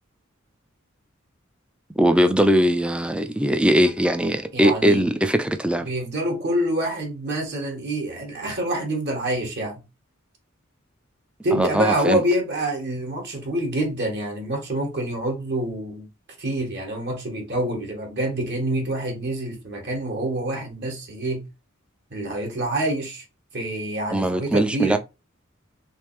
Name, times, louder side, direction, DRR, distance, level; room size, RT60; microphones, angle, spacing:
voice 1, 2.0-5.9 11.5-12.2 24.1-25.0, equal, 5° right, 0.4 m, -20 dB
voice 2, 4.5-5.1 5.8-9.8 11.4-16.1 16.4-21.4 22.1-23.2 23.5-25.0, right 1 dB, 55° right, 1.6 m, -26 dB
3.5 x 3.3 x 3.1 m
head